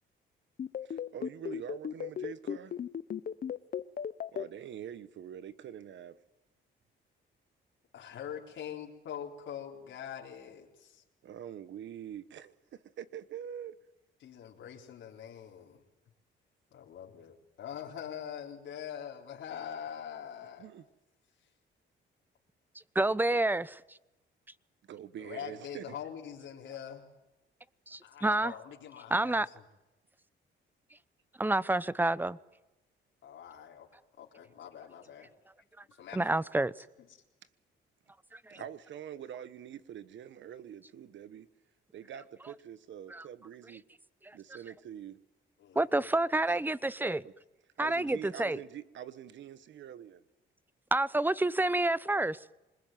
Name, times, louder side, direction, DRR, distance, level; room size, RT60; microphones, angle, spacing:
sound 1, 0.6-4.4, left 8 dB, 45° left, 0.9 m, -35 dB
voice 1, 0.8-2.8 4.3-6.2 11.2-13.7 20.6-20.8 24.9-25.9 38.5-41.5 41.9-43.8 44.3-45.2 47.0-47.3 47.8-50.2, right 9 dB, 70° right, 1.3 m, -45 dB
voice 2, 7.9-11.0 14.2-15.8 16.7-20.7 25.2-27.0 28.0-29.4 33.2-33.9 34.2-35.3 35.9-36.3 45.6-46.1, left 9 dB, 75° left, 3.9 m, -44 dB
voice 3, 22.9-23.8 27.9-28.5 29.1-29.5 31.4-32.4 36.1-36.9 38.3-38.6 43.1-43.2 44.2-44.4 45.8-47.2 47.8-48.6 50.9-52.4, right 2 dB, 10° right, 0.8 m, -29 dB
26.5 x 20.5 x 9.3 m
cardioid pair, 90°, 20 cm